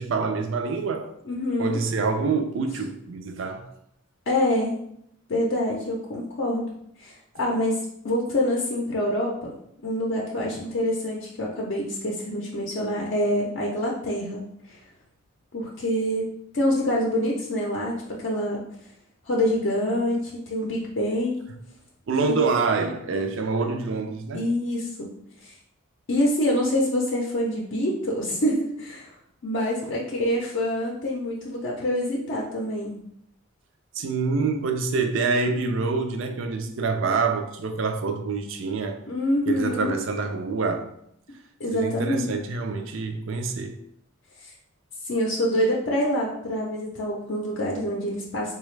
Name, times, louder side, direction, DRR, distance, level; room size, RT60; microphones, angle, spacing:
voice 1, 0.0-1.1 1.6-3.8 22.1-24.5 29.8-29.9 33.9-39.0 39.5-40.9 41.7-43.8, right 4 dB, 60° right, 0.4 m, -26 dB
voice 2, 1.3-1.8 4.3-4.7 5.3-6.7 7.0-9.5 9.8-14.8 15.5-18.6 19.3-21.4 22.3-22.4 24.3-25.1 25.4-25.5 26.1-29.1 29.4-33.0 39.1-39.9 41.6-42.3 45.0-48.5, left 1 dB, 55° left, 0.5 m, -26 dB
4.0 x 2.3 x 3.1 m
head